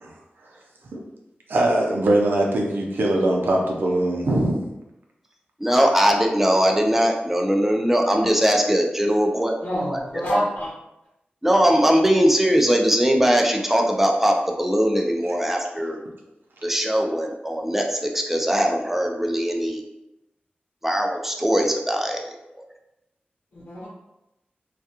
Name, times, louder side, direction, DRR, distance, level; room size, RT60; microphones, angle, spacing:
voice 1, 1.5-4.5 15.6-15.7, right 1 dB, 80° right, -1 dB, 0.5 m, -21 dB
voice 2, 5.6-9.6 9.9-10.2 11.4-16.0 16.6-19.8 20.8-22.3 22.5-22.6, equal, 5° right, 1 dB, 0.3 m, -20 dB
voice 3, 9.6-10.7 23.5-23.9, equal, 70° left, -8 dB, 0.8 m, -26 dB
2.3 x 2.2 x 2.8 m, 0.91 s
wide cardioid pair, 110°, 3 cm